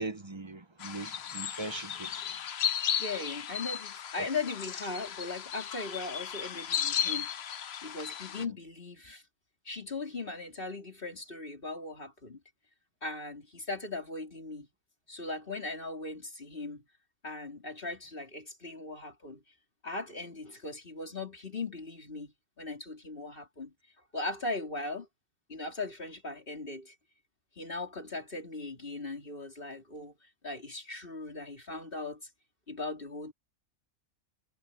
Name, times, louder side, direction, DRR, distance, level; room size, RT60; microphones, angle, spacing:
voice 1, 0.0-2.2, right 2 dB, 20° right, 0.9 m, -40 dB
sound 1, 0.8-8.4, left 9 dB, 50° left, 0.9 m, -35 dB
voice 2, 3.0-7.4 7.8-9.2 9.7-12.4 13.0-14.7 15.1-16.8 17.2-19.4 19.8-23.7 24.1-25.1 25.5-26.9 27.6-30.1 30.4-32.2 32.7-33.3, left 3 dB, 35° left, 4.0 m, -39 dB
omnidirectional pair, 1.6 m